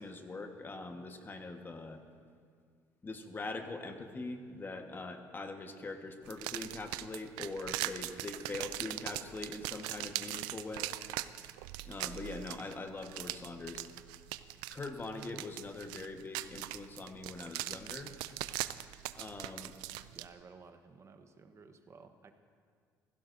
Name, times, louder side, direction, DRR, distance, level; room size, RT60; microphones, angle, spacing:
voice 1, 0.0-2.0 3.0-10.9 11.8-13.8 14.7-18.1 19.2-19.7, left 3 dB, 30° left, 5 dB, 1.4 m, -43 dB
sound 1, 6.2-20.3, right 16 dB, 90° right, 0.3 m, -41 dB
voice 2, 20.1-22.3, right 5 dB, 40° right, 7 dB, 1.0 m, -55 dB
16.0 x 16.0 x 2.7 m, 2.1 s
supercardioid pair, 80°, 7 cm